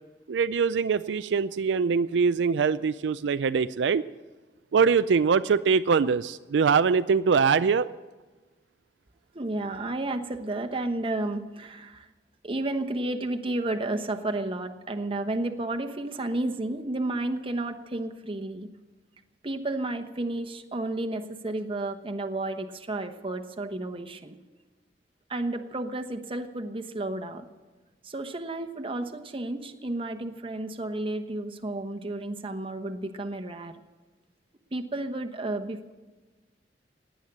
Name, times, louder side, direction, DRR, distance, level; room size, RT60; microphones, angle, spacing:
voice 1, 0.3-4.0 4.7-7.9, right 5 dB, 80° right, 12 dB, 0.4 m, -23 dB
voice 2, 9.3-12.1 12.4-18.7 19.4-24.3 25.3-27.5 28.0-33.8 34.7-35.9, right 2 dB, 30° right, 6 dB, 1.1 m, -32 dB
17.5 x 10.0 x 7.9 m, 1.3 s
head